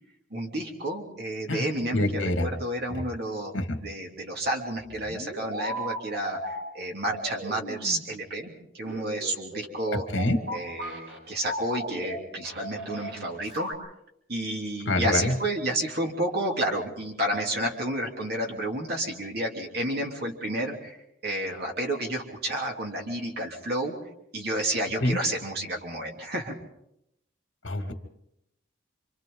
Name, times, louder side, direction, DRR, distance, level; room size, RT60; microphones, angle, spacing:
voice 1, 0.3-2.0 2.4-3.5 3.8-10.0 10.5-13.7 14.3-21.0 21.2-23.9 24.3-26.5, right 1 dB, 55° right, 0 dB, 3.0 m, -31 dB
voice 2, 1.9-2.5 3.5-3.8 9.9-10.4 14.9-15.3 25.0-25.2 27.6-27.9, left 1 dB, 90° left, 5 dB, 2.4 m, -25 dB
sound 1, 4.8-6.6 7.1-8.0 8.9-11.2 11.4-12.2 12.4-13.7, right 1 dB, 75° right, 7.1 m, -35 dB
28.0 x 26.0 x 3.9 m, 0.80 s
head